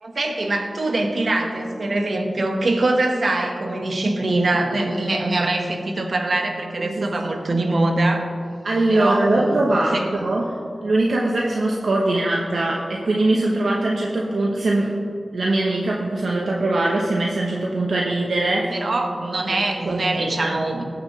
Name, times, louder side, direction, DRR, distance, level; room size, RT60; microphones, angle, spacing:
voice 1, 0.0-8.3 8.9-10.1 12.1-12.2 18.7-20.8, right 2 dB, 65° right, 3 dB, 1.3 m, -23 dB
voice 2, 8.6-15.0 15.3-18.9 19.5-20.6, right 2 dB, 80° right, -2 dB, 0.9 m, -22 dB
17.5 x 7.1 x 3.2 m, 2.4 s
wide cardioid pair, 55°, 0 cm